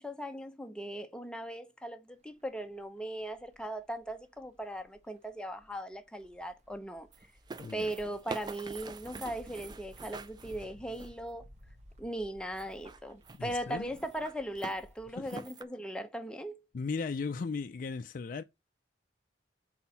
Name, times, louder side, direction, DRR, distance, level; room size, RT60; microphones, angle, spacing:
voice 1, 0.0-7.1 7.7-11.4 12.0-16.6, right 1 dB, 5° left, 0.7 m, -39 dB
sound 1, 2.4-2.8 3.2-15.3, equal, 40° right, 1.0 m, -58 dB
sound 2, 7.1-11.3 12.5-13.5 13.9-14.8 15.3-15.6, right 4 dB, 25° right, 0.4 m, -46 dB
voice 2, 7.6-7.9 13.3-13.9 15.2-15.5 16.7-18.4, left 4 dB, 50° left, 0.4 m, -37 dB
4.4 x 4.3 x 5.5 m
head